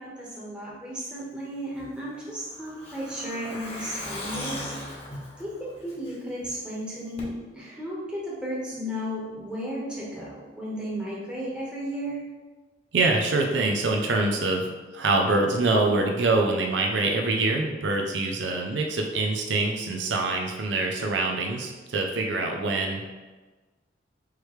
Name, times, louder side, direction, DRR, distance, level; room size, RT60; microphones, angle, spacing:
voice 1, 0.0-4.9 5.4-12.3, equal, 5° right, -7 dB, 1.1 m, -34 dB
Truck, 1.8-6.5 6.8-6.9 7.2-7.3, left 1 dB, 35° left, 0.9 m, -38 dB
voice 2, 12.9-23.1, right 2 dB, 75° right, 2 dB, 0.5 m, -25 dB
4.8 x 3.2 x 3.1 m, 1.3 s
head